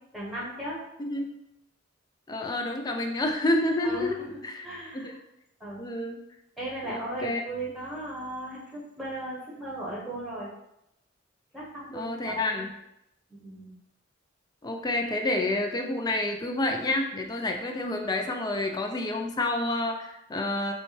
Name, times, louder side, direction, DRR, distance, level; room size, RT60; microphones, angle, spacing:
voice 1, 0.1-0.8 3.8-5.2 5.6-5.8 6.6-10.5 11.5-12.6 13.3-13.7, right 1 dB, ahead, -6 dB, 1.1 m, -37 dB
voice 2, 2.3-4.7 5.0-5.2 5.8-6.2 6.8-7.4 11.9-12.7 14.6-20.7, left 2 dB, 20° left, 3 dB, 0.3 m, -29 dB
5.2 x 2.2 x 3.2 m, 0.83 s
head